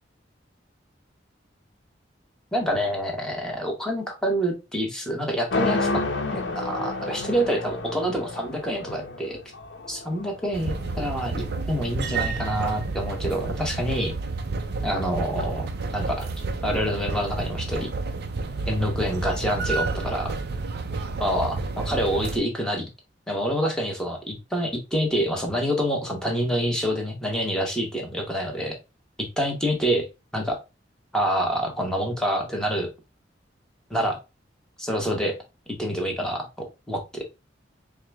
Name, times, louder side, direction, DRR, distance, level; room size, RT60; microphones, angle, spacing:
voice 1, 2.5-6.0 6.3-9.4 9.9-14.1 14.8-16.3 16.6-17.9 18.7-20.4 21.2-22.9 23.3-28.8 29.2-30.1 30.3-30.6 31.1-32.9 33.9-34.2 34.8-35.4 35.8-37.3, equal, 5° left, 0 dB, 1.0 m, -27 dB
sound 1, 5.5-11.6, left 3 dB, 75° left, 0.7 m, -30 dB
sound 2, 10.5-22.4, right 3 dB, 60° right, 0.5 m, -30 dB
4.7 x 2.2 x 3.3 m, 0.26 s
head